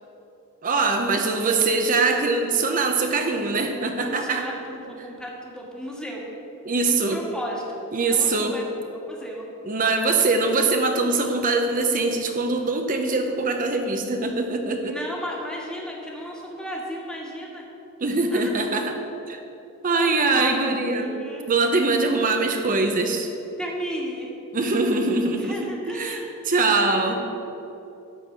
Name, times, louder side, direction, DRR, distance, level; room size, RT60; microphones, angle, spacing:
voice 1, 0.6-4.5 6.6-7.2 7.9-8.6 9.7-15.0 18.0-19.0 19.3-19.4 19.8-23.3 24.5-27.2, right 3 dB, 35° right, 4 dB, 0.7 m, -23 dB
voice 2, 4.0-6.2 6.8-8.6 9.1-9.4 14.8-17.6 18.3-18.5 19.9-21.5 23.6-24.3 25.3-26.3 26.6-27.4, equal, 5° left, -2 dB, 1.5 m, -34 dB
12.0 x 4.6 x 8.2 m, 3.0 s
head